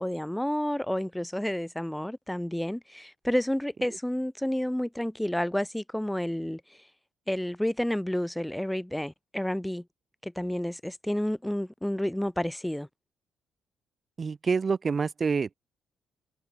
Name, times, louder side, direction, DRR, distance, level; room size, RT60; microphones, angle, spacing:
voice 1, 0.0-6.6 7.3-9.8 10.2-12.9, left 1 dB, 5° left, 1.0 m, -30 dB
voice 2, 14.2-15.5, right 5 dB, 35° right, 1.6 m, -27 dB
cardioid pair, 90°, 0 cm